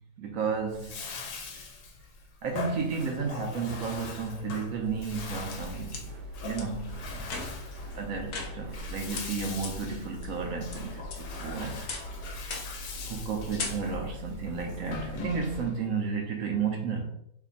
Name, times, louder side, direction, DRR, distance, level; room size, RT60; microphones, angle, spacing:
voice 1, 0.2-1.0 2.4-6.1 6.4-7.3 7.9-11.8 13.1-17.1, right 5 dB, 70° right, 0.8 m, -32 dB
Bathtub (filling or washing), 0.7-15.8, left 4 dB, 85° left, 1.3 m, -42 dB
sound 1, 4.8-15.7, equal, 85° right, 1.3 m, -42 dB
sound 2, 5.1-6.0 6.6-6.7 7.2-7.7 8.3-8.9 9.2-9.3 9.6-9.7 10.2-10.8 11.1-11.5 11.9-12.2 12.5-12.8 13.1-13.3 13.6-14.2, left 4 dB, 70° left, 1.2 m, -38 dB
3.3 x 2.2 x 3.8 m
omnidirectional pair, 1.8 m